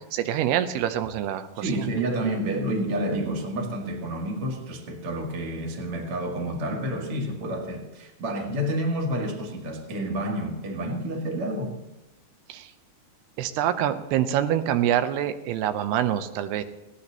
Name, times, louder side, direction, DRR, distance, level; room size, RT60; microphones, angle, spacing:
voice 1, 0.1-1.5 1.7-1.9 2.2-2.3 12.5-12.7 13.4-16.6, right 10 dB, 80° right, 10 dB, 2.8 m, -25 dB
voice 2, 1.6-11.8, right 1 dB, 40° right, 1 dB, 2.3 m, -29 dB
19.0 x 17.0 x 2.9 m, 0.99 s
omnidirectional pair, 4.8 m